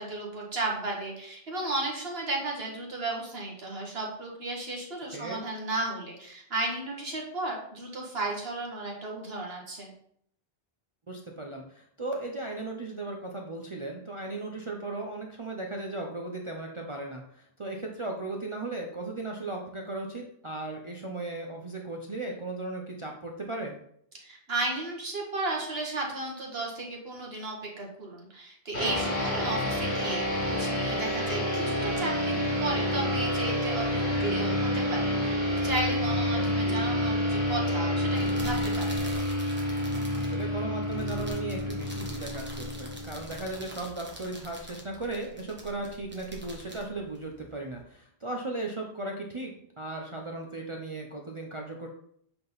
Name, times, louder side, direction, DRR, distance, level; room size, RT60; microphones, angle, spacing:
voice 1, 0.0-9.9 24.2-39.0, right 2 dB, 70° right, -1 dB, 1.7 m, -34 dB
voice 2, 11.1-23.8 29.3-29.5 36.2-36.5 40.1-51.9, right 2 dB, 35° right, 0 dB, 0.7 m, -36 dB
sound 1, 28.7-43.6, left 1 dB, 85° left, 2.5 m, -29 dB
sound 2, 38.1-47.8, right 1 dB, 10° right, 1.2 m, -45 dB
7.7 x 3.8 x 3.9 m, 0.66 s
omnidirectional pair, 1.1 m